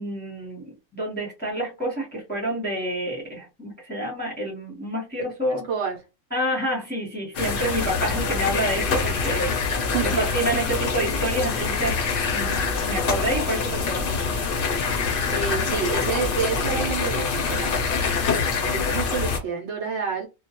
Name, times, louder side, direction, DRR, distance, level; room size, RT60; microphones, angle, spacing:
voice 1, 0.0-5.7 6.3-12.0 12.3-14.2, right 1 dB, 10° left, 0.7 m, -28 dB
voice 2, 5.7-6.0 9.9-10.2 10.5-10.6 15.3-18.0 18.6-20.3, right 6 dB, 65° right, 0.9 m, -29 dB
sound 1, 7.3-19.4, left 5 dB, 60° left, 0.6 m, -25 dB
2.3 x 2.1 x 2.8 m
omnidirectional pair, 1.4 m